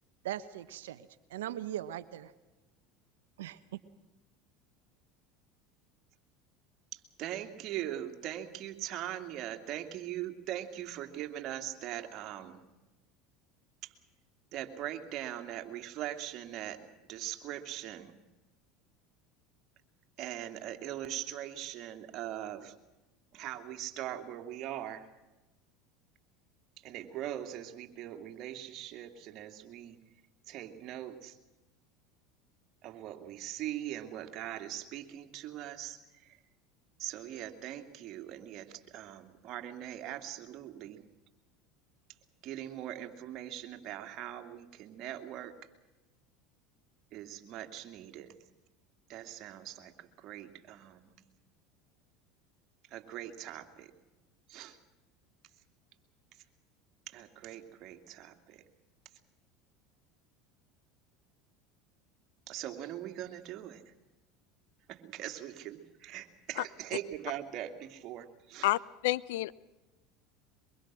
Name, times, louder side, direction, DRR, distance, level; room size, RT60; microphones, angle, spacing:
voice 1, 0.2-2.3 3.4-3.8, right 12 dB, 85° right, 14 dB, 1.0 m, -40 dB
voice 2, 6.9-12.6 13.8-13.9 14.5-16.8 17.1-18.1 20.2-22.7 23.3-25.1 26.8-30.0 30.5-31.4 32.8-36.4 37.0-41.1 42.4-45.5 47.1-48.3 49.1-51.1 52.9-53.9 54.5-54.8 57.1-58.6 62.5-63.9 64.9-68.7, right 12 dB, 55° right, 6 dB, 2.8 m, -41 dB
voice 3, 68.6-69.5, left 17 dB, 75° left, 20 dB, 0.7 m, -29 dB
23.5 x 23.0 x 6.3 m, 1.1 s
hypercardioid pair, 90°, 0 cm